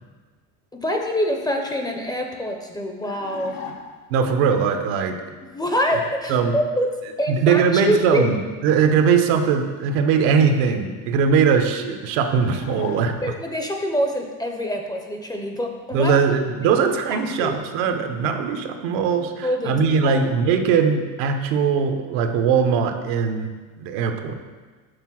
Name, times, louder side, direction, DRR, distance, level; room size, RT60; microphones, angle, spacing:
voice 1, 0.7-3.7 5.5-8.2 13.2-16.1 16.6-16.7 17.1-17.5 19.4-19.8 20.0-20.2, equal, 10° left, 2 dB, 0.4 m, -25 dB
sound 1, 3.0-4.2 12.3-13.6, left 6 dB, 85° left, 0.9 m, -38 dB
voice 2, 4.1-5.2 6.3-6.5 7.3-13.2 15.9-23.5 23.8-24.4, right 6 dB, 80° right, 6 dB, 0.8 m, -20 dB
6.7 x 3.7 x 5.9 m, 1.4 s
cardioid pair, 130°, 40 cm